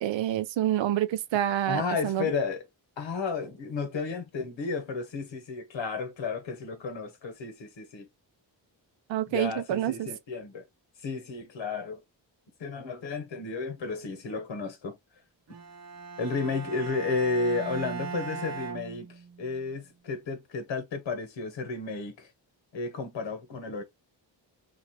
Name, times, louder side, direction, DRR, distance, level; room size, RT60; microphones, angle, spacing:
voice 1, 0.0-2.3 9.1-10.1, right 12 dB, 80° right, 0.5 m, -27 dB
voice 2, 1.7-2.6 3.0-8.1 9.3-10.6 11.0-12.0 12.6-15.0 16.2-22.3 22.7-23.8, left 4 dB, 80° left, 1.2 m, -32 dB
Bowed string instrument, 15.5-19.6, right 5 dB, 35° right, 0.6 m, -39 dB
3.0 x 2.4 x 2.9 m
cardioid pair, 60°, 45 cm